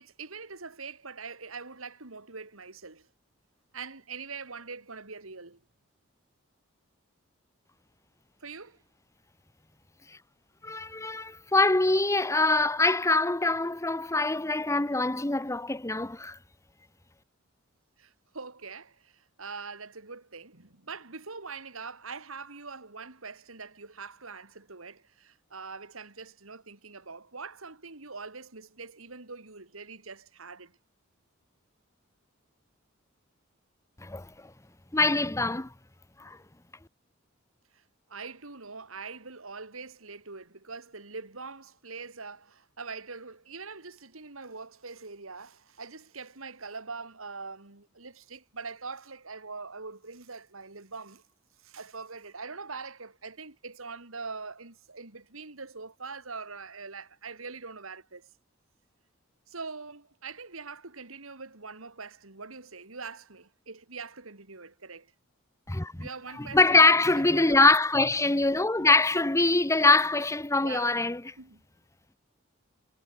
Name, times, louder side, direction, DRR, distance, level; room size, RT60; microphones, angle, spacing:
voice 1, 0.0-3.1 3.7-5.6 8.4-8.8 18.0-30.7 37.7-37.8 38.1-51.2 51.6-58.3 59.5-65.1 66.0-66.8 67.2-67.8 70.6-70.9 71.4-71.6, right 4 dB, 85° right, 2.8 m, -43 dB
voice 2, 10.6-16.4 34.0-34.3 34.9-35.7 36.2-36.4 65.7-66.1 66.4-71.3, left 2 dB, 15° left, 1.0 m, -24 dB
head